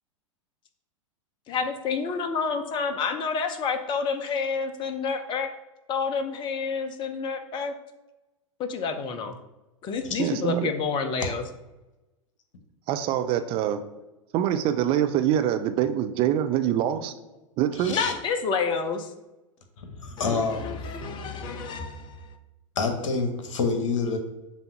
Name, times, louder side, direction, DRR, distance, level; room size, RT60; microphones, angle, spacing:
voice 1, 1.5-5.5 5.9-7.7 8.6-9.4 9.8-11.4 17.9-19.1 20.2-22.4, left 5 dB, 25° left, 7 dB, 0.7 m, -29 dB
voice 2, 10.2-10.7 12.9-13.8 14.3-17.1 17.6-17.9, right 11 dB, 30° right, 9 dB, 0.4 m, -24 dB
voice 3, 17.7-18.1 19.8-21.0 22.7-24.2, left 4 dB, 60° left, 5 dB, 1.2 m, -28 dB
7.1 x 2.7 x 5.7 m, 1.0 s
figure-of-eight pair, 95°, 17 cm